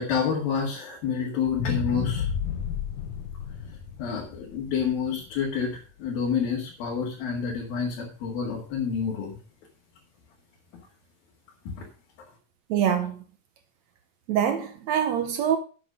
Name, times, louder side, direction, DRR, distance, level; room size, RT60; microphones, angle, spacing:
voice 1, 0.0-2.3 4.0-9.4 11.8-11.9, left 6 dB, 85° left, 3.8 m, -28 dB
sound 1, 1.5-5.7 6.2-6.3, left 8 dB, 70° left, 2.3 m, -32 dB
voice 2, 12.7-13.2 14.3-15.6, right 9 dB, 70° right, 1.7 m, -24 dB
8.3 x 8.1 x 4.9 m
omnidirectional pair, 4.1 m